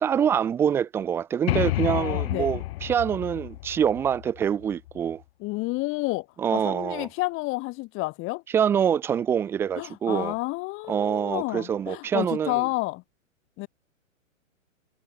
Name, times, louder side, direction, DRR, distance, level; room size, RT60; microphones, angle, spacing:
voice 1, 0.0-5.2 6.4-7.1 8.5-10.3 10.9-12.7, right 8 dB, 5° right, 0.4 m, -25 dB
sound 1, 1.5-5.1, left 17 dB, 50° left, 3.1 m, -30 dB
voice 2, 1.8-2.5 5.4-6.3 6.5-8.4 9.8-13.0 13.6-13.7, left 22 dB, 30° left, 3.8 m, -30 dB
hypercardioid pair, 130°, 39 cm